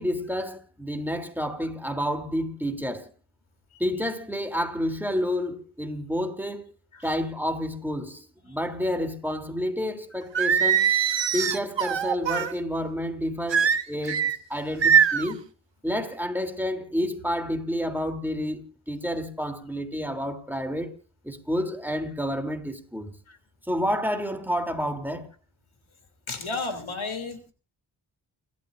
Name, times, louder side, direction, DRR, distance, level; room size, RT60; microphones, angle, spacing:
voice 1, 0.0-3.1 3.8-6.6 7.0-10.8 11.3-15.4 15.8-21.0 21.2-23.1 23.7-25.3, equal, 5° right, 3.3 m, -29 dB
Singing, 10.3-12.5 13.5-14.3 14.8-15.3, right 8 dB, 65° right, 1.4 m, -22 dB
voice 2, 26.3-27.5, left 3 dB, 75° left, 3.3 m, -33 dB
29.5 x 13.0 x 2.6 m
cardioid pair, 50°, 48 cm